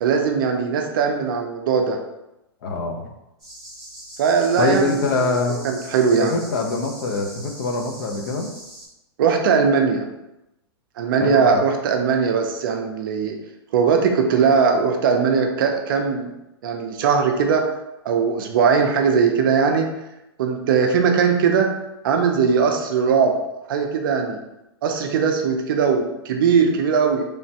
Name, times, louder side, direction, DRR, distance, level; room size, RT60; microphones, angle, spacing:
voice 1, 0.0-2.0 4.2-5.4 5.6-6.4 9.2-10.1 11.0-13.4 13.7-16.3 16.6-17.7 18.0-19.9 20.4-21.7 22.0-23.3 23.7-24.4 24.8-27.3, right 6 dB, 55° right, 4 dB, 0.4 m, -19 dB
voice 2, 2.6-3.1 4.6-5.7 6.2-8.5 11.2-11.6, left 3 dB, 50° left, 3 dB, 0.5 m, -24 dB
sound 1, 3.4-8.9, right 1 dB, ahead, 0.9 m, -41 dB
3.1 x 2.1 x 2.7 m, 0.92 s
hypercardioid pair, 160°, 14 cm